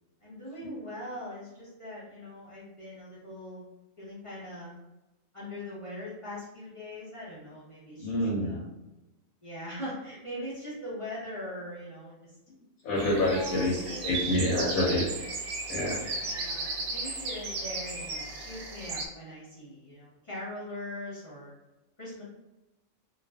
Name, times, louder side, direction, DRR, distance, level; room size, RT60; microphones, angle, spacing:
voice 1, 0.2-3.6 4.0-4.8 5.3-8.6 9.4-12.4 13.3-14.2 16.2-21.5 22.0-22.2, left 1 dB, 35° left, -9 dB, 0.6 m, -41 dB
voice 2, 8.0-8.6 12.8-15.1 15.7-16.0, left 1 dB, 90° left, -6 dB, 1.1 m, -27 dB
sound 1, 12.9-19.1, right 3 dB, 80° right, 1.0 m, -35 dB
2.5 x 2.4 x 2.2 m, 1.0 s
omnidirectional pair, 1.5 m